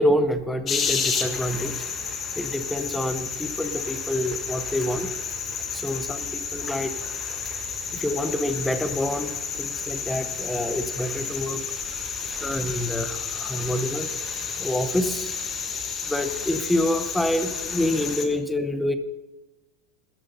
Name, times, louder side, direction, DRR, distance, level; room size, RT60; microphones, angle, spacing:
voice 1, 0.0-1.9 2.4-5.1 5.7-6.9 7.5-7.6 7.9-11.6 12.4-14.1 14.6-15.4 16.1-19.0, left 1 dB, 5° left, 10 dB, 0.7 m, -27 dB
sound 1, 0.7-18.3, left 5 dB, 20° left, 1.2 m, -31 dB
13.5 x 10.5 x 5.4 m, 1.1 s
supercardioid pair, 165°, 0 cm